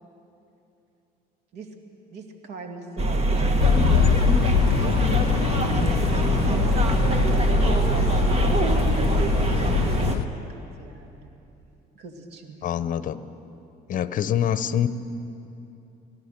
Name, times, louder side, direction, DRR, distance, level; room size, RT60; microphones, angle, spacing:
voice 1, 2.1-3.6 4.4-5.0 6.5-11.3 11.9-12.6, right 4 dB, 75° right, 4 dB, 2.3 m, -40 dB
sound 1, 3.0-10.2, right 2 dB, 40° right, 1.8 m, -23 dB
sound 2, 3.6-10.3, left 14 dB, 70° left, 0.4 m, -24 dB
voice 2, 12.6-13.3 13.9-14.9, left 9 dB, 50° left, 13 dB, 0.9 m, -25 dB
25.0 x 17.0 x 6.8 m, 2.8 s
cardioid pair, 110°, 17 cm